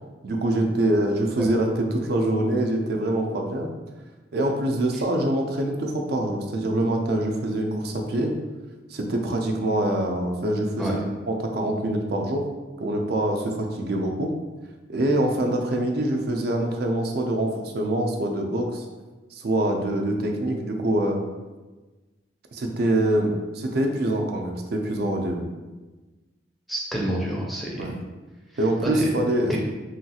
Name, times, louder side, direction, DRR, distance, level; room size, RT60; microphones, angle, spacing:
voice 1, 0.2-3.7 4.3-8.3 8.9-11.0 11.3-12.5 12.8-14.3 14.9-18.8 19.3-21.2 22.5-25.5 27.8-27.9 28.6-29.6, right 1 dB, 60° right, 3 dB, 0.4 m, -24 dB
voice 2, 26.7-27.8 28.8-29.1 29.4-29.6, right 1 dB, ahead, -3 dB, 0.5 m, -28 dB
3.1 x 2.3 x 2.7 m, 1.2 s
head